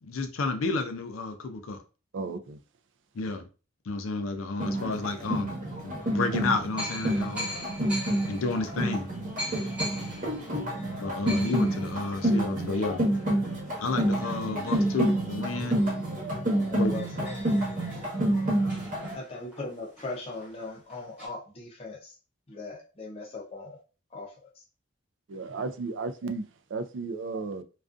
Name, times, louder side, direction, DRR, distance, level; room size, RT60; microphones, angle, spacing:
voice 1, 0.0-1.8 3.1-3.5 3.9-7.5 8.3-9.1 11.0-13.0 13.8-15.8 16.8-16.9, left 3 dB, 90° left, 0.5 m, -31 dB
voice 2, 2.1-2.6 10.7-10.8 25.3-26.5 26.7-27.6, right 3 dB, 65° right, 0.3 m, -34 dB
sound 1, 4.6-19.1, right 1 dB, 40° right, 1.0 m, -29 dB
sound 2, 6.0-6.1 6.8-15.9 16.3-16.4 16.6-21.3, equal, 5° right, 0.8 m, -42 dB
voice 3, 16.6-17.3 19.1-22.1 22.5-23.8 24.1-24.3, left 3 dB, 30° left, 0.5 m, -39 dB
2.4 x 2.3 x 2.4 m
head